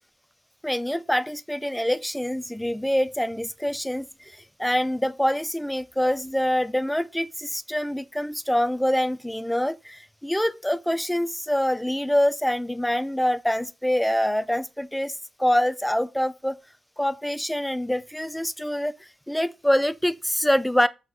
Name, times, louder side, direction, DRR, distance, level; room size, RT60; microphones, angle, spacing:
voice 1, 0.6-15.1 15.4-16.6 17.0-18.9 19.3-20.9, equal, 5° left, 0.4 m, -25 dB
6.4 x 3.0 x 5.6 m
cardioid pair, 90°, 0 cm